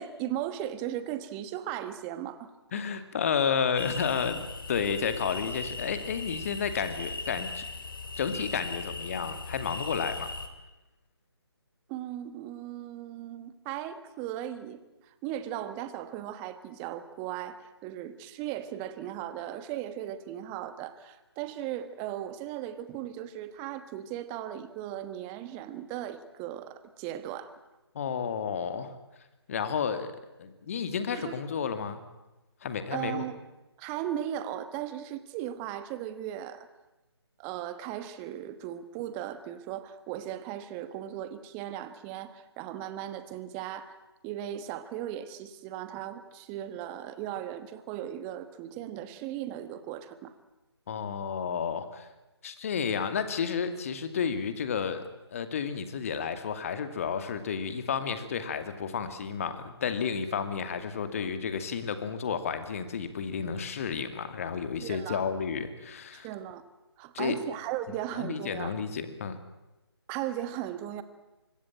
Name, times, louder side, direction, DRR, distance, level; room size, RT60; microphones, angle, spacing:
voice 1, 0.0-2.5 11.9-14.8 15.1-27.5 31.1-31.4 32.9-33.4 33.8-36.7 37.4-44.0 44.2-50.3 64.8-65.2 66.1-66.6 67.0-68.7 70.1-71.0, right 11 dB, 15° right, 12 dB, 1.3 m, -37 dB
voice 2, 2.7-7.6 8.2-10.3 27.9-28.9 29.5-30.1 30.4-32.0 32.6-33.2 50.9-52.1 52.4-55.0 55.3-66.3 67.1-67.4 68.1-69.4, left 6 dB, 30° left, 10 dB, 2.3 m, -31 dB
sound 1, 3.8-10.5, left 3 dB, 50° left, 3.4 m, -38 dB
25.5 x 20.5 x 8.9 m, 1.0 s
figure-of-eight pair, 150°, 14 cm